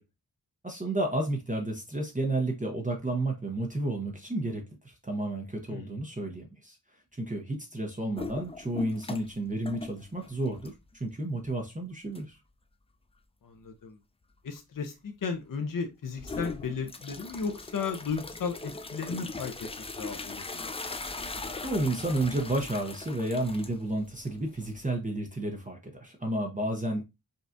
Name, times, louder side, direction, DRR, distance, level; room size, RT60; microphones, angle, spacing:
voice 1, 0.6-6.8 7.2-12.4 21.6-27.0, right 1 dB, 20° right, 0.7 m, -31 dB
sound 1, 8.2-9.4 9.6-11.0 11.4-11.5 12.1-12.2 16.2-24.9, left 3 dB, 15° left, 0.3 m, -40 dB
voice 2, 13.4-14.0 14.4-20.8, left 5 dB, 55° left, 0.7 m, -35 dB
5.2 x 2.3 x 2.6 m
wide cardioid pair, 90°, 39 cm